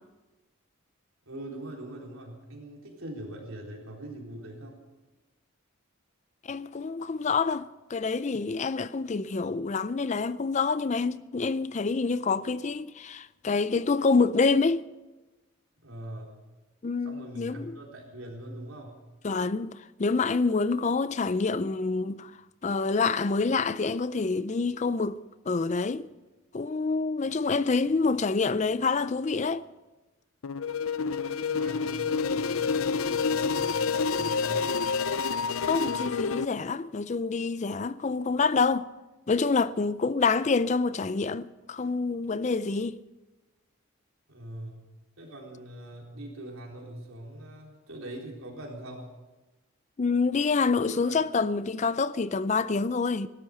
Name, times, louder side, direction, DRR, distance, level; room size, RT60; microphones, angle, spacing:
voice 1, 1.3-4.8 15.8-16.4 17.0-19.0 31.3-34.8 44.3-44.9 45.2-49.1 50.9-51.2, right 1 dB, 80° right, 3.9 m, -42 dB
voice 2, 6.4-14.8 16.8-17.8 19.2-22.3 22.6-26.1 26.5-29.6 35.6-38.9 39.3-43.0 50.0-53.3, left 4 dB, 35° left, 0.4 m, -27 dB
sound 1, 30.4-36.5, left 5 dB, 85° left, 0.6 m, -28 dB
16.5 x 12.5 x 6.5 m
head